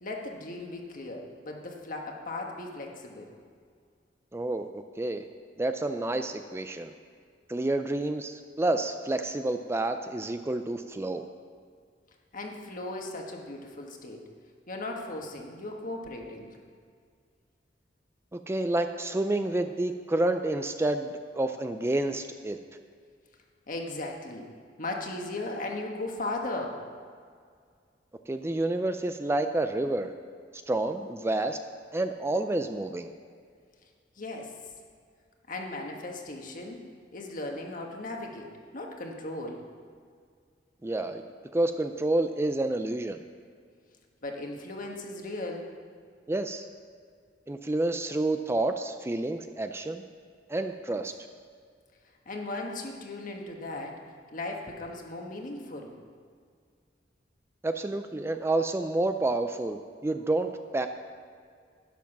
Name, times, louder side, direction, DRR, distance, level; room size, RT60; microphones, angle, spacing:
voice 1, 0.0-3.3 12.3-14.2 14.7-16.5 23.7-24.5 24.8-26.8 34.2-34.5 35.5-36.8 37.1-38.5 38.7-39.6 44.2-45.7 52.2-54.0 54.3-55.9, left 2 dB, 50° left, 1 dB, 1.5 m, -37 dB
voice 2, 4.3-5.3 5.6-6.9 7.5-11.3 18.3-22.6 28.3-30.1 30.7-31.6 31.9-33.1 40.8-41.2 41.5-43.2 46.3-46.7 47.5-50.0 50.5-51.1 57.6-60.9, right 2 dB, 15° right, 7 dB, 0.4 m, -29 dB
12.0 x 9.5 x 6.0 m, 2.1 s
head